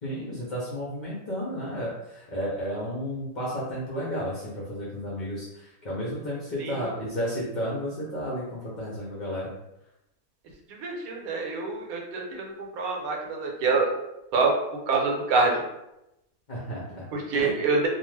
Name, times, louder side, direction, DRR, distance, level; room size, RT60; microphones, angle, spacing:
voice 1, 0.0-9.5 16.5-17.1 17.4-17.5, equal, 55° left, -6 dB, 0.5 m, -32 dB
voice 2, 10.7-13.9 14.3-14.5 14.9-15.6 17.1-17.9, right 4 dB, 75° right, -1 dB, 1.1 m, -26 dB
2.4 x 2.3 x 3.2 m, 0.89 s
omnidirectional pair, 1.6 m